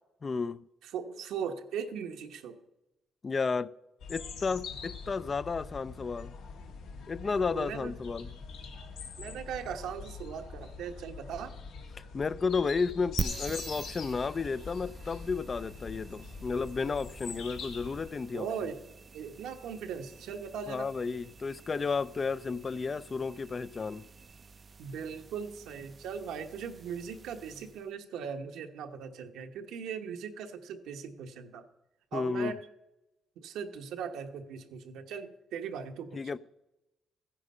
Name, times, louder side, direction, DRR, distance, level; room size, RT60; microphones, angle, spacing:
voice 1, 0.2-0.6 3.2-3.7 4.1-6.3 7.1-8.3 12.1-18.7 20.7-24.0 32.1-32.6 36.1-36.4, left 4 dB, 35° left, 0.4 m, -32 dB
voice 2, 0.8-2.6 7.5-7.9 9.2-11.5 18.3-18.8 19.1-20.9 24.8-31.6 32.1-32.6 33.4-36.2, right 7 dB, 85° right, 1.2 m, -39 dB
sound 1, 4.0-18.1, left 5 dB, 85° left, 1.8 m, -44 dB
sound 2, 13.2-27.9, right 4 dB, 35° right, 0.4 m, -45 dB
14.5 x 9.9 x 5.4 m
cardioid pair, 90°, 0 cm